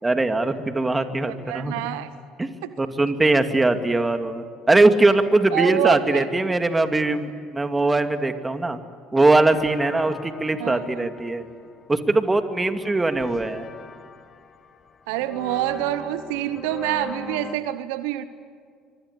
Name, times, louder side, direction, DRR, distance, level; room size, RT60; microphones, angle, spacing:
voice 1, 0.0-1.9 2.4-2.5 2.8-8.8 9.1-11.4 11.9-13.6, right 2 dB, 15° right, 8 dB, 2.4 m, -21 dB
voice 2, 1.5-2.1 2.6-2.7 5.5-6.3 10.6-11.1 15.1-18.3, right 14 dB, 75° right, 13 dB, 1.0 m, -27 dB
sound 1, 9.3-17.6, left 5 dB, 40° left, 1.8 m, -41 dB
25.5 x 24.5 x 8.4 m, 2.1 s
hypercardioid pair, 65°, 0 cm